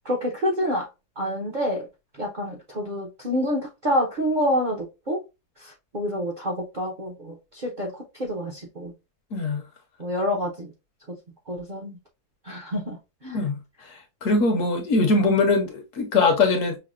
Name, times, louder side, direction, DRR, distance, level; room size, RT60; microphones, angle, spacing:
voice 1, 0.0-0.9 1.2-1.9 2.1-5.2 5.6-8.9 10.0-10.7 11.5-12.0 12.4-13.0 13.2-13.4, equal, 55° right, 0.5 m, -27 dB
voice 2, 9.3-9.6 13.3-13.5 13.9-16.8, left 3 dB, 65° left, 1.0 m, -22 dB
5.6 x 2.0 x 2.4 m
omnidirectional pair, 1.7 m